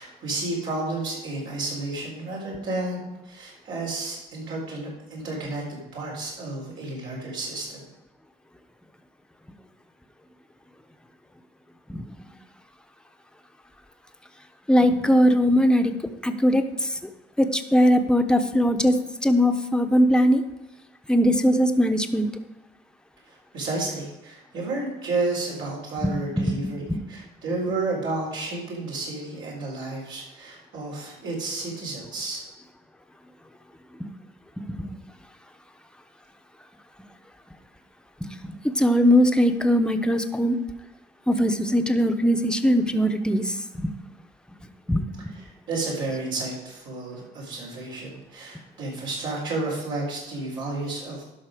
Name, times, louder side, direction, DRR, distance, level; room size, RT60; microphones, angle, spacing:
voice 1, 0.0-7.9 23.3-32.4 45.2-51.2, right 2 dB, 75° right, -4 dB, 4.1 m, -31 dB
voice 2, 14.7-15.9 16.2-16.9 17.4-19.0 19.2-20.4 21.1-22.3 26.0-27.0 27.7-27.8 34.7-34.9 38.4-40.6 41.3-43.9 44.9-45.3, equal, 5° left, 6 dB, 0.9 m, -21 dB
12.0 x 5.6 x 5.1 m, 1.0 s
cardioid pair, 90°, 20 cm